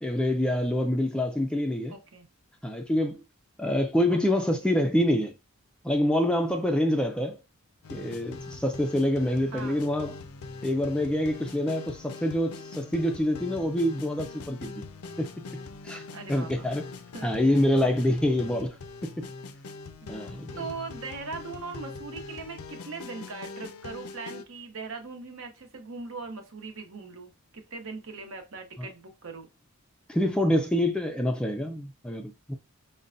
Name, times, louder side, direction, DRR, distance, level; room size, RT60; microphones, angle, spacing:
voice 1, 0.0-1.9 2.6-3.2 3.6-5.3 5.8-7.4 7.9-10.2 10.6-14.8 15.2-15.3 15.8-16.8 17.2-18.8 19.0-19.3 20.1-20.6 28.8-28.9 30.1-32.6, left 1 dB, 5° left, 0.3 m, -26 dB
voice 2, 1.9-2.3 4.1-4.7 9.5-9.9 16.1-16.7 17.1-17.3 20.0-20.2 20.6-29.5, right 4 dB, 65° right, 0.9 m, -40 dB
sound 1, 7.8-24.4, left 3 dB, 75° left, 0.4 m, -42 dB
5.2 x 2.2 x 2.5 m
head